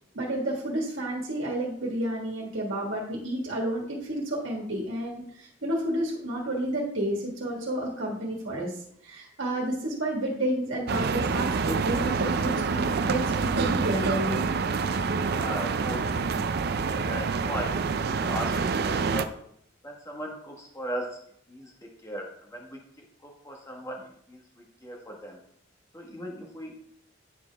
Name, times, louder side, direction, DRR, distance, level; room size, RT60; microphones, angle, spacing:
voice 1, 0.1-14.4, right 1 dB, 85° right, -2 dB, 1.6 m, -30 dB
sound 1, 10.9-19.2, right 5 dB, 55° right, 0.4 m, -27 dB
voice 2, 15.3-16.3 16.6-19.3 19.8-21.2 21.5-25.4 25.9-26.7, equal, 15° left, 0 dB, 1.5 m, -38 dB
9.4 x 5.0 x 3.4 m, 0.68 s
head